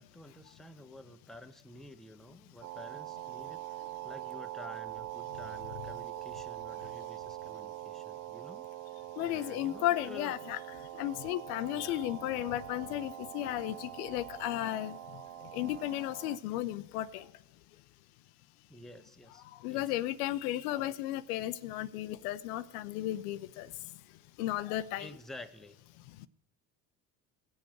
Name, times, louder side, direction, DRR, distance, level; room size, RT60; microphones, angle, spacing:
voice 1, 0.0-8.7 9.2-10.4 11.7-12.1 18.7-19.9 20.7-20.9 25.0-25.8, left 2 dB, ahead, 8 dB, 0.7 m, -51 dB
sound 1, 2.6-16.4, right 15 dB, 45° right, 0.6 m, -43 dB
voice 2, 9.2-10.6 10.9-15.2 15.5-17.3 19.6-23.7 24.4-25.1 26.2-26.3, left 14 dB, 80° left, 15 dB, 0.5 m, -34 dB
17.5 x 7.1 x 4.6 m, 0.91 s
hypercardioid pair, 65°, 44 cm